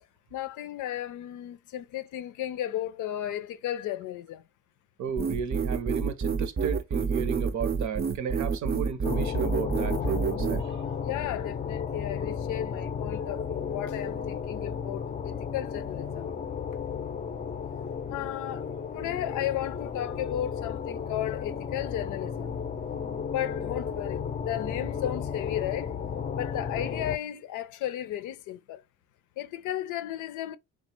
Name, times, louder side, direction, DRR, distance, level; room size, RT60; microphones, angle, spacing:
voice 1, 0.3-4.4 11.0-16.3 18.1-18.7 18.9-22.6 23.3-25.9 26.4-28.8 29.4-30.6, left 12 dB, 90° left, 0.5 m, -34 dB
voice 2, 5.0-10.8, right 7 dB, 70° right, 0.8 m, -34 dB
sound 1, 5.2-10.6, right 5 dB, 35° right, 0.5 m, -28 dB
sound 2, 9.0-27.2, left 7 dB, 25° left, 0.4 m, -34 dB
3.4 x 2.3 x 4.3 m
cardioid pair, 90°, 30 cm